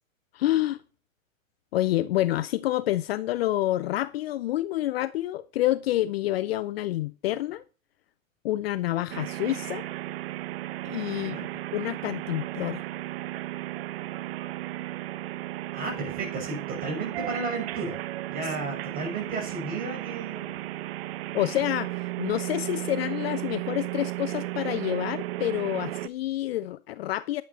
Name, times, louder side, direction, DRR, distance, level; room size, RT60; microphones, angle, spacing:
voice 1, 0.3-0.8 1.7-7.6 8.4-9.9 10.8-11.4 11.7-12.8 18.4-18.5 21.3-27.4, left 15 dB, 50° left, 0.6 m, -28 dB
sound 1, 9.1-26.1, right 16 dB, 45° right, 0.7 m, -34 dB
voice 2, 11.1-11.5 15.7-18.0 18.3-20.7, right 3 dB, 20° right, 6.4 m, -33 dB
10.5 x 8.8 x 4.2 m
hypercardioid pair, 135°, 41 cm